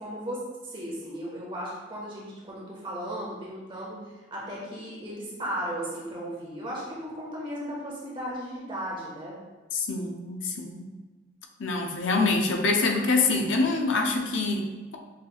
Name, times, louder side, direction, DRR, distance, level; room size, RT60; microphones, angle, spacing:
voice 1, 0.0-4.0 4.3-9.4, equal, 25° right, -5 dB, 1.2 m, -36 dB
voice 2, 9.7-10.9 11.6-15.0, left 3 dB, 70° left, 2 dB, 0.5 m, -25 dB
6.5 x 3.3 x 2.3 m, 1.2 s
head